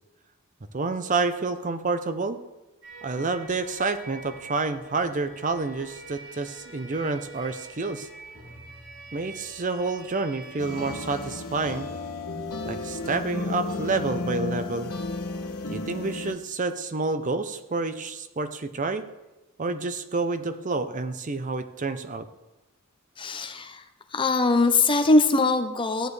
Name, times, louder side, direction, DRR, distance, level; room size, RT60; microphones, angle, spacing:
voice 1, 0.7-2.4 3.0-8.1 9.1-11.9 12.6-14.9 15.7-19.0 19.6-22.3, right 3 dB, 35° right, 10 dB, 0.6 m, -29 dB
sound 1, 2.8-11.4, right 3 dB, 85° right, 3.5 m, -45 dB
sound 2, 10.6-16.4, left 2 dB, 90° left, 1.2 m, -33 dB
voice 2, 23.2-23.8 24.1-26.1, left 3 dB, 25° left, 7 dB, 0.6 m, -21 dB
15.0 x 9.1 x 3.2 m, 1.0 s
head